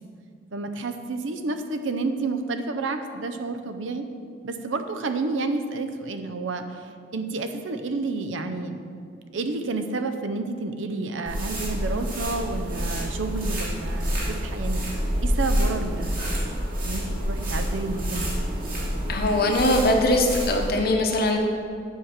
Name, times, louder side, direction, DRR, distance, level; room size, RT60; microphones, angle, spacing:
voice 1, 0.5-4.1 4.4-6.8 7.1-8.8 9.3-14.8 15.2-18.4, right 3 dB, 80° right, 8 dB, 0.6 m, -30 dB
sound 1, 11.3-20.8, equal, 50° right, 2.0 m, -28 dB
voice 2, 19.1-21.4, left 1 dB, 55° left, 3 dB, 0.9 m, -21 dB
7.4 x 4.8 x 5.8 m, 2.2 s
head